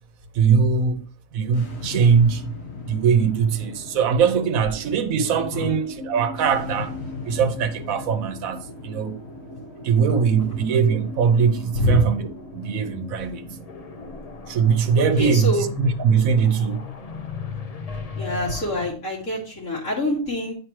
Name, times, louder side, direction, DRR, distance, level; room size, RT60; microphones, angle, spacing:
voice 1, 0.4-1.0 1.3-2.4 2.9-6.9 7.3-9.1 9.8-13.4 14.5-16.8, right 6 dB, 85° right, 1.2 m, -21 dB
sound 1, 1.4-16.4, left 3 dB, 55° left, 1.4 m, -39 dB
sound 2, 10.3-18.9, left 5 dB, 40° left, 0.6 m, -37 dB
voice 2, 15.2-15.7 18.1-20.5, left 1 dB, 80° left, 3.0 m, -25 dB
8.9 x 4.9 x 3.2 m
omnidirectional pair, 1.4 m